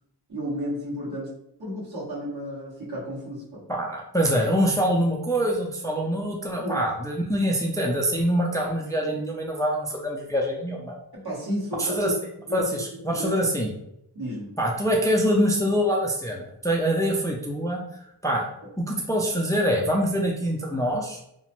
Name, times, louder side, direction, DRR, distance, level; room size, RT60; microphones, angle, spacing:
voice 1, 0.3-1.3 1.6-3.6 6.6-6.8 11.1-12.1 12.5-13.5 14.1-14.5, equal, 65° right, -8 dB, 1.5 m, -32 dB
voice 2, 3.7-11.0 11.8-12.1 12.5-13.7 14.6-17.8 18.2-18.5 18.8-21.2, equal, 10° left, -1 dB, 0.4 m, -24 dB
2.9 x 2.1 x 3.0 m, 0.77 s
wide cardioid pair, 75°, 40 cm